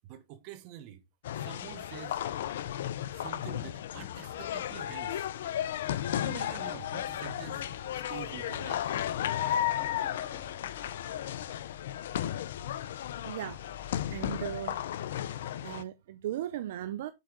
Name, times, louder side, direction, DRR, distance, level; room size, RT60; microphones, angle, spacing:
voice 1, 0.0-1.0 1.3-2.2 3.1-5.3 6.2-8.8, right 11 dB, 50° right, 1.2 m, -46 dB
sound 1, 1.2-15.8, left 11 dB, 70° left, 0.5 m, -34 dB
Motorcycle / Accelerating revving vroom, 1.6-15.4, left 4 dB, 35° left, 4.0 m, -52 dB
voice 2, 13.2-13.6 13.9-15.1 15.6-17.1, right 12 dB, 65° right, 0.5 m, -37 dB
6.5 x 4.7 x 3.8 m
hypercardioid pair, 115°, 0 cm